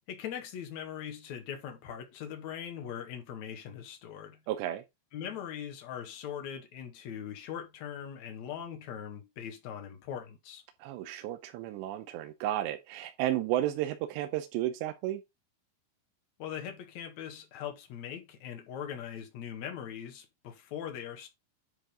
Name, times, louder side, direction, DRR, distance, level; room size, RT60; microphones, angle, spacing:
voice 1, 0.1-4.4 5.1-10.6 16.4-21.3, left 9 dB, 55° left, 2.3 m, -41 dB
voice 2, 4.5-4.8 10.8-15.2, right 13 dB, 85° right, 2.9 m, -33 dB
10.5 x 3.8 x 5.1 m
omnidirectional pair, 5.2 m